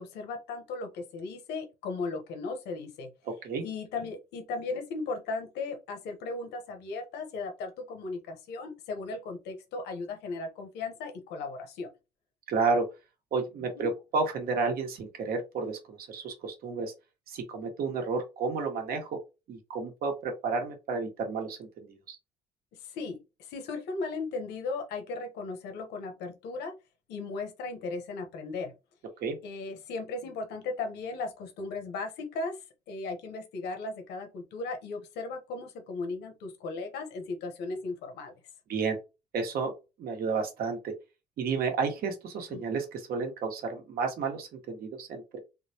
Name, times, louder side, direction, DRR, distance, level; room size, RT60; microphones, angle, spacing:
voice 1, 0.0-3.1 3.6-11.9 13.7-13.9 22.8-26.7 27.1-28.7 29.4-38.3 42.5-42.6, left 3 dB, 80° left, 5 dB, 0.9 m, -36 dB
voice 2, 12.5-12.8 13.3-16.9 17.3-19.2 19.5-22.2 29.2-29.4 38.7-39.0 39.3-39.7 40.0-40.9 41.4-45.4, right 4 dB, 60° right, 4 dB, 1.1 m, -31 dB
3.8 x 2.2 x 2.7 m, 0.27 s
cardioid pair, 110°, 17 cm